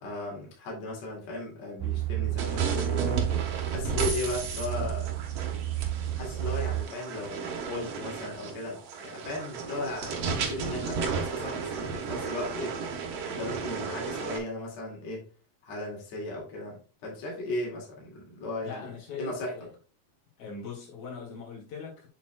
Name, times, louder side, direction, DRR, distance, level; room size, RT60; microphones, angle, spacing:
voice 1, 0.0-3.3 3.7-5.1 6.1-12.8 13.2-15.3 15.6-18.9 19.2-19.5, left 2 dB, 50° left, 3.3 m, -36 dB
sound 1, 1.8-6.8, right 14 dB, 85° right, 2.4 m, -31 dB
sound 2, 2.4-14.4, right 5 dB, 60° right, 1.8 m, -34 dB
voice 2, 18.6-19.7 20.4-22.1, left 5 dB, 80° left, 4.3 m, -41 dB
7.2 x 7.1 x 2.3 m
omnidirectional pair, 4.0 m